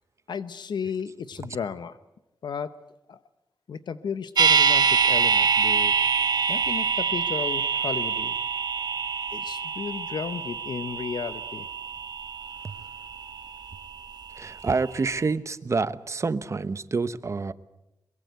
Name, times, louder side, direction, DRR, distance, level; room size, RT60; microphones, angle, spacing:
voice 1, 0.3-2.0 2.4-2.8 3.1-3.2 3.7-6.0 6.5-8.4 9.3-11.7, left 6 dB, 75° left, 12 dB, 0.9 m, -34 dB
sound 1, 4.4-14.4 14.7-14.8, right 6 dB, 65° right, 1.7 m, -25 dB
voice 2, 14.4-17.5, right 4 dB, 40° right, 14 dB, 1.0 m, -27 dB
24.0 x 22.0 x 8.1 m, 0.91 s
wide cardioid pair, 90°, 8 cm